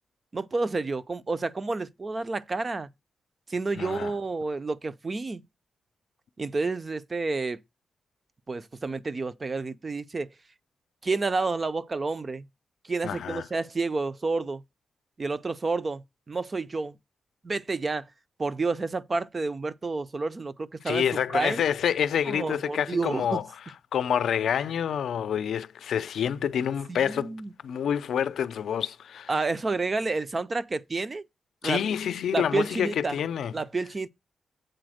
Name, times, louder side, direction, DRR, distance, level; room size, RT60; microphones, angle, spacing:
voice 1, 0.3-2.9 3.5-5.4 6.4-7.6 8.5-10.3 11.0-12.5 12.8-14.6 15.2-17.0 17.4-18.1 18.4-21.0 21.3-21.7 22.3-23.4 26.9-27.5 29.3-31.2 31.6-31.8 32.3-33.2 33.5-34.1, right 3 dB, 25° right, 0.4 m, -30 dB
voice 2, 3.7-4.1 13.0-13.4 20.9-23.4 23.9-27.3 27.6-29.3 31.6-33.5, left 8 dB, 85° left, 0.5 m, -27 dB
7.8 x 4.1 x 6.3 m
wide cardioid pair, 180°, 0 cm